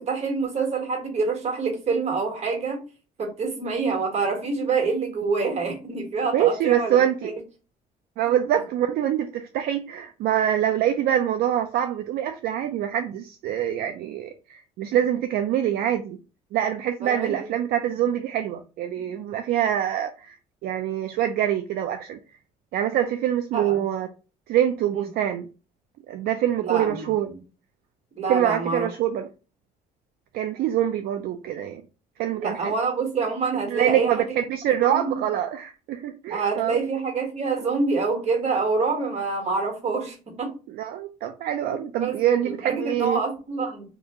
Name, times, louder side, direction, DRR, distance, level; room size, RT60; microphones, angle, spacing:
voice 1, 0.0-2.8 3.2-7.3 17.0-17.3 23.5-23.8 24.9-25.1 26.6-27.1 28.2-28.9 32.4-34.1 34.9-35.3 36.3-40.5 41.7-44.0, right 4 dB, 40° right, 1.4 m, -26 dB
voice 2, 6.3-7.3 8.2-16.2 16.5-20.4 20.6-22.2 22.7-24.1 24.5-25.5 26.1-27.3 28.3-29.3 30.3-31.8 32.2-32.7 33.7-36.8 40.7-43.2, right 10 dB, 65° right, 0.4 m, -25 dB
2.8 x 2.5 x 3.5 m
cardioid pair, 110°, 17 cm